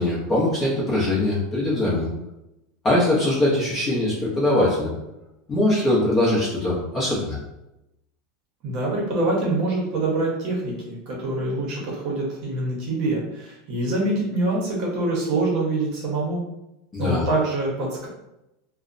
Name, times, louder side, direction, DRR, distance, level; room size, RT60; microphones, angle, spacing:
voice 1, 0.0-2.1 2.8-4.9 5.5-7.4 16.9-17.2, left 1 dB, 20° left, -5 dB, 0.7 m, -22 dB
voice 2, 8.6-16.4 17.0-18.1, right 2 dB, 40° right, -4 dB, 0.8 m, -25 dB
2.7 x 2.0 x 2.4 m, 0.91 s
supercardioid pair, 170°, 0 cm